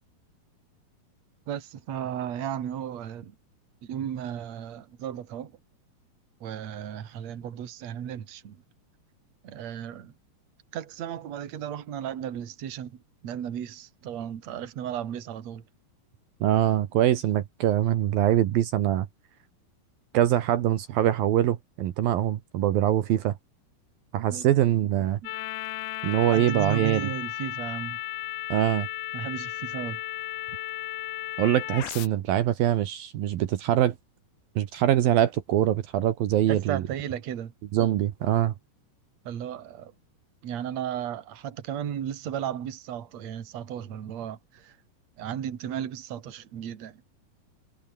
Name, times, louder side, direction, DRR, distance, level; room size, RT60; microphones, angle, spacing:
voice 1, 1.5-3.3 3.8-5.5 6.4-8.6 9.4-10.1 10.7-15.6 24.3-24.5 25.2-25.4 26.3-28.0 29.1-30.0 30.5-30.6 36.5-37.5 39.2-39.9 40.4-44.8 45.2-47.0, right 9 dB, 50° right, 3.0 m, -35 dB
voice 2, 16.4-19.1 20.1-23.4 24.1-25.2 26.0-27.1 28.5-28.9 31.4-33.9 34.6-36.8 37.7-38.5, right 12 dB, 70° right, 3.0 m, -23 dB
sound 1, 25.2-32.1, left 14 dB, 80° left, 3.1 m, -34 dB
omnidirectional pair, 4.5 m